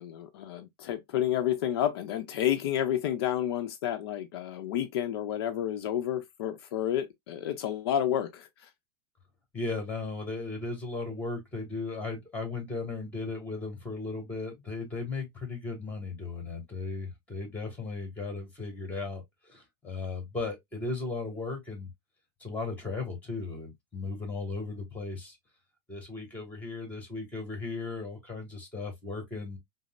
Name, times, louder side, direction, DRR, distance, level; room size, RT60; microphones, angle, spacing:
voice 1, 0.0-8.5, left 10 dB, 70° left, 0.6 m, -30 dB
voice 2, 9.5-21.9 22.4-25.4 25.9-29.6, left 3 dB, 10° left, 1.9 m, -36 dB
5.1 x 2.0 x 2.4 m
supercardioid pair, 125°, 13 cm